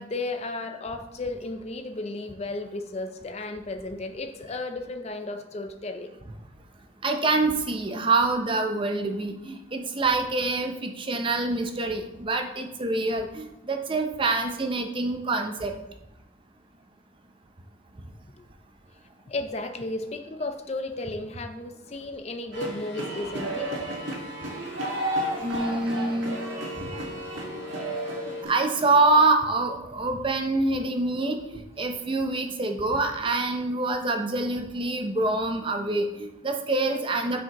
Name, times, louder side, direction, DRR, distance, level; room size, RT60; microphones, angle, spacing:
voice 1, 0.0-6.1 19.3-23.7, left 2 dB, 30° left, 7 dB, 0.5 m, -34 dB
voice 2, 7.0-15.7 25.4-26.4 28.4-37.4, right 2 dB, 25° right, 5 dB, 0.6 m, -26 dB
sound 1, 22.5-28.4, left 2 dB, 65° left, 0.8 m, -41 dB
sound 2, 22.5-29.2, right 1 dB, 70° right, 1.6 m, -33 dB
9.3 x 5.0 x 3.0 m, 0.96 s
head